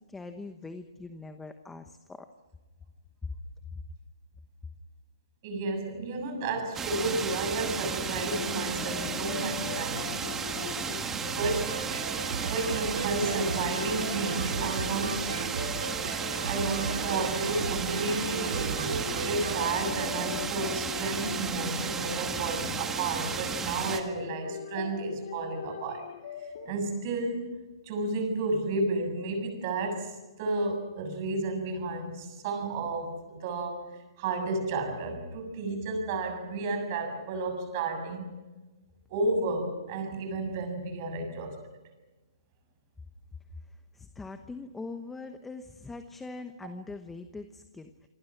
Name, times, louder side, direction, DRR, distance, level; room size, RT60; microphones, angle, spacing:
voice 1, 0.1-2.3 3.2-3.3 43.9-48.1, left 3 dB, 5° left, 8 dB, 1.1 m, -42 dB
voice 2, 5.4-10.2 11.1-11.8 12.4-15.4 16.4-26.1 26.4-27.6 27.8-38.4 39.1-41.6 46.6-46.7, right 2 dB, 35° right, 7 dB, 6.9 m, -32 dB
sound 1, 6.7-24.0, right 6 dB, 10° right, 2.0 m, -34 dB
sound 2, 7.7-26.8, left 8 dB, 50° left, 2.6 m, -42 dB
sound 3, 11.4-19.7, right 6 dB, 80° right, 2.3 m, -35 dB
27.5 x 25.5 x 6.0 m, 1.1 s
hypercardioid pair, 160°, 3 cm